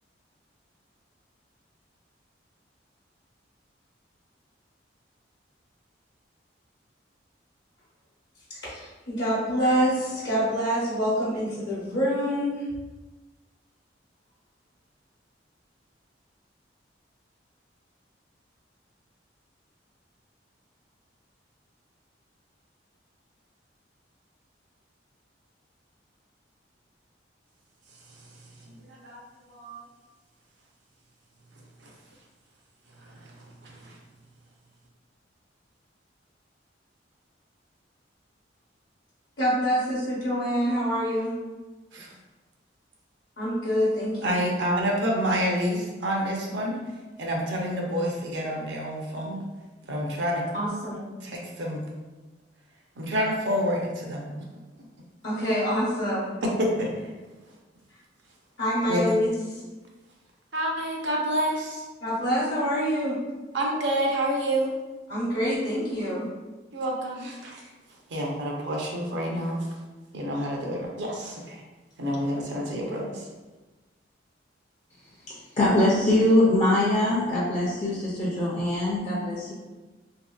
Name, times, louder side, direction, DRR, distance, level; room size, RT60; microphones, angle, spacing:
voice 1, 8.6-12.6 39.4-41.3 43.4-44.5 50.5-51.1 55.2-56.3 58.6-59.3 62.0-63.2 65.1-66.2, equal, 60° left, -9 dB, 0.8 m, -26 dB
voice 2, 28.8-29.2 29.5-29.8 33.8-33.9 41.9-42.1 44.2-46.8 47.2-49.4 49.9-50.4 51.2-51.8 53.0-54.3 56.6-57.1 58.9-59.0 60.5-61.8 63.5-64.7 66.7-67.6 68.1-69.6 70.1-71.6 72.0-73.2, equal, 70° right, -1 dB, 0.5 m, -28 dB
voice 3, 75.6-79.5, left 1 dB, 35° left, -6 dB, 0.5 m, -22 dB
2.8 x 2.6 x 2.3 m, 1.2 s
head